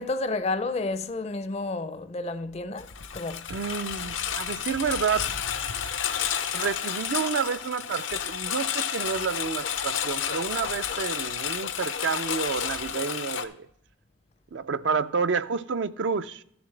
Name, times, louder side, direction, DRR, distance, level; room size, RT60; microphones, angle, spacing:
voice 1, 0.0-3.5, left 3 dB, 35° left, 0.4 m, -31 dB
Engine, 2.8-13.4, left 8 dB, 80° left, 0.7 m, -31 dB
voice 2, 3.5-5.3 6.5-13.7 14.5-16.4, right 5 dB, 65° right, 0.4 m, -29 dB
13.5 x 7.1 x 3.2 m
head